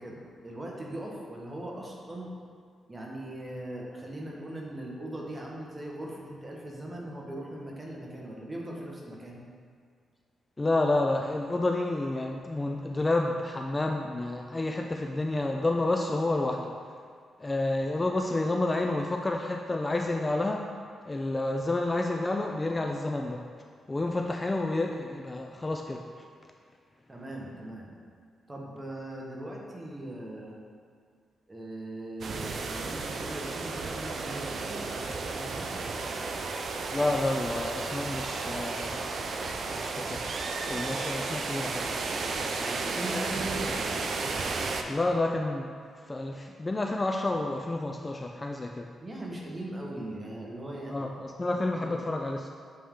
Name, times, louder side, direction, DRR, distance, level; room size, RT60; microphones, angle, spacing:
voice 1, 0.0-2.3 2.9-9.4 27.1-27.9 28.5-30.6 31.5-35.7 42.6-44.0 49.0-51.1 51.5-52.0, right 1 dB, 20° right, -2 dB, 1.1 m, -39 dB
voice 2, 10.6-16.8 17.4-20.7 21.1-23.5 23.9-26.3 36.9-39.1 39.7-40.2 40.7-41.9 44.9-45.7 46.0-48.9 50.9-52.5, left 2 dB, 20° left, 3 dB, 0.3 m, -29 dB
sound 1, 32.2-44.8, right 3 dB, 55° right, 0.5 m, -33 dB
7.8 x 3.4 x 3.7 m, 2.1 s
cardioid pair, 100°, 0 cm